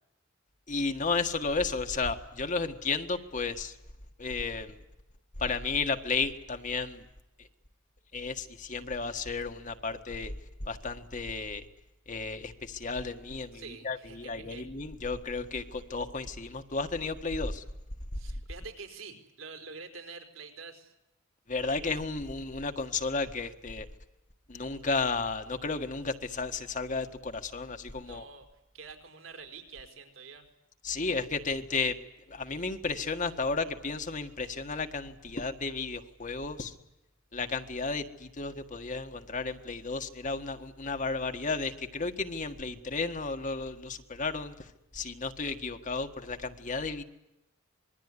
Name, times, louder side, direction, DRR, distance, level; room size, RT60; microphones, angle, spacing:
voice 1, 0.7-3.8 4.2-4.8 5.4-7.0 7.4-7.5 8.1-10.3 10.6-11.7 12.1-17.6 21.5-23.9 24.5-28.2 30.8-32.0 32.3-36.7 37.3-47.0, left 4 dB, 40° left, 7 dB, 1.6 m, -33 dB
voice 2, 13.5-14.6 18.1-20.9 28.0-28.5 28.7-30.5, right 4 dB, 70° right, 5 dB, 4.8 m, -46 dB
26.5 x 22.0 x 9.9 m, 0.89 s
head